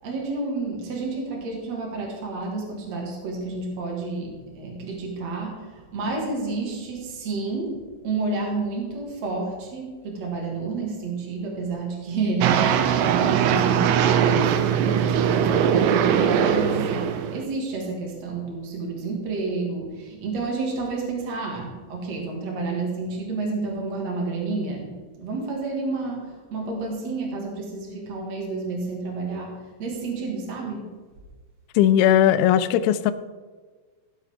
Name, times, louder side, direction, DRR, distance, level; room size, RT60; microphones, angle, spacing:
voice 1, 0.0-30.9, right 3 dB, 45° right, -1 dB, 2.3 m, -30 dB
sound 1, 12.4-17.5, right 8 dB, 85° right, 3.3 m, -21 dB
voice 2, 31.8-33.1, left 10 dB, 85° left, 12 dB, 2.6 m, -18 dB
15.5 x 7.6 x 3.7 m, 1.4 s
omnidirectional pair, 5.9 m